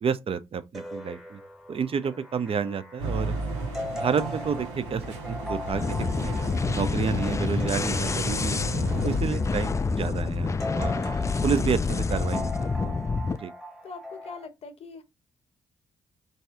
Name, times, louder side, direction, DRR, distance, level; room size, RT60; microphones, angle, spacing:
voice 1, 0.0-1.4 1.7-3.3 3.9-6.4 6.7-8.7 9.0-11.0 11.4-12.5 12.8-13.0 13.4-13.5, right 6 dB, 40° right, 0.5 m, -30 dB
sound 1, 0.7-14.5, left 1 dB, ahead, 0.9 m, -40 dB
sound 2, 3.0-9.2, right 2 dB, 85° right, 0.8 m, -34 dB
sound 3, 5.7-13.4, left 4 dB, 20° left, 0.3 m, -27 dB
voice 2, 13.8-15.0, left 4 dB, 45° left, 0.9 m, -42 dB
3.1 x 2.7 x 3.4 m
hypercardioid pair, 40°, 15 cm